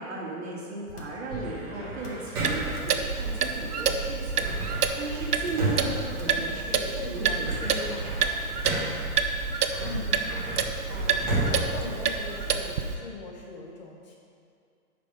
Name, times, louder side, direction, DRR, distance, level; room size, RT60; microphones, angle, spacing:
voice 1, 0.0-6.8 7.1-8.2 9.9-10.1, right 3 dB, 45° right, -4 dB, 2.2 m, -36 dB
sound 1, 0.9-1.3 1.9-2.3 2.7-3.7 4.3-4.7 5.4-5.8 6.2-6.5 6.8-7.2 8.3-8.7 9.5-9.8, left 2 dB, 90° left, 2.1 m, -45 dB
sound 2, 1.3-2.9 4.4-6.9 7.2-9.2 9.7-12.7, right 1 dB, 15° right, 1.1 m, -33 dB
Clock, 2.4-12.9, right 5 dB, 80° right, 0.9 m, -29 dB
voice 2, 5.9-6.4 6.8-7.4 7.8-8.0 9.8-10.3 10.9-11.2 11.5-14.2, left 4 dB, 30° left, -2 dB, 1.2 m, -41 dB
10.5 x 5.3 x 5.0 m, 2.4 s
hypercardioid pair, 175°, 45 cm